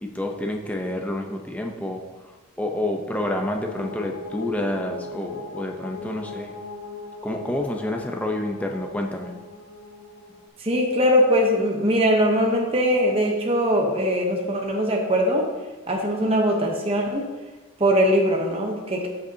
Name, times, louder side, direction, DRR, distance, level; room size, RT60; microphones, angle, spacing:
voice 1, 0.0-6.5 7.2-9.3, left 1 dB, 5° left, 2 dB, 0.7 m, -29 dB
sound 1, 3.6-10.5, left 4 dB, 85° left, 1.9 m, -39 dB
voice 2, 10.6-15.5 15.9-17.3 17.8-19.1, equal, 30° right, 0 dB, 0.9 m, -21 dB
13.5 x 6.5 x 2.8 m, 1.3 s
head